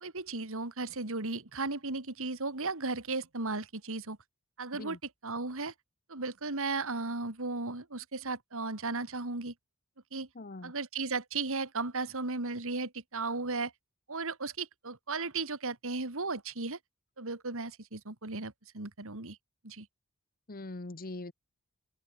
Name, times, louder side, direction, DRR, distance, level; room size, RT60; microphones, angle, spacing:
voice 1, 0.0-4.2 4.6-5.7 6.1-9.5 10.1-10.3 10.6-13.7 14.1-16.8 17.2-19.4 19.6-19.9, right 3 dB, 65° right, 2.6 m, -35 dB
voice 2, 10.3-10.7 20.5-21.3, left 2 dB, 40° left, 1.2 m, -42 dB
open air
head